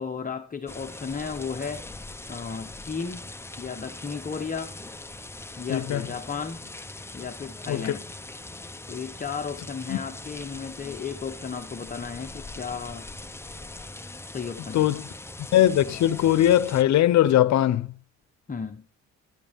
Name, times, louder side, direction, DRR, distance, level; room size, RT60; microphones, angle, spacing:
voice 1, 0.0-1.8 2.3-3.3 3.6-4.7 5.6-6.6 7.1-8.0 8.9-13.1 14.3-14.8 18.5-18.8, left 5 dB, 25° left, 1.0 m, -34 dB
sound 1, 0.7-16.8, left 2 dB, 10° left, 0.7 m, -41 dB
voice 2, 5.7-6.1 7.7-7.9 9.9-10.0 14.7-15.1 15.5-17.9, left 12 dB, 65° left, 0.8 m, -20 dB
12.0 x 11.5 x 3.6 m
cardioid pair, 90°, 30 cm